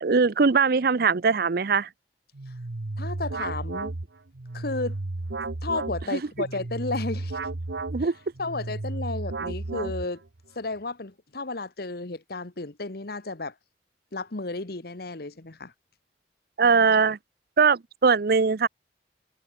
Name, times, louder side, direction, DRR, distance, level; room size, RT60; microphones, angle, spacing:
voice 1, 0.0-1.9 6.1-6.2 7.9-8.1 16.6-17.2 17.6-18.7, right 5 dB, 55° right, 0.6 m, -21 dB
sound 1, 2.3-10.4, right 2 dB, 80° right, 1.1 m, -33 dB
voice 2, 3.0-3.9 4.5-5.0 5.6-7.4 8.0-8.1 8.4-10.2 10.5-13.5 14.1-15.7, left 3 dB, 60° left, 1.4 m, -33 dB
head